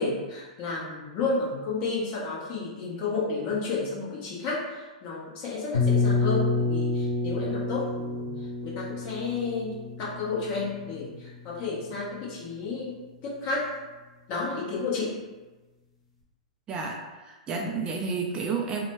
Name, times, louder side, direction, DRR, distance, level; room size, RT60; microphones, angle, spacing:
voice 1, 0.0-8.3 8.6-12.9 13.2-13.8 14.3-15.1, left 3 dB, 40° left, -6 dB, 1.0 m, -31 dB
sound 1, 5.7-11.5, left 3 dB, 80° left, 0.9 m, -28 dB
voice 2, 16.7-18.9, right 4 dB, 25° right, 0 dB, 0.4 m, -31 dB
2.6 x 2.2 x 3.0 m, 1.2 s
hypercardioid pair, 105°, 4 cm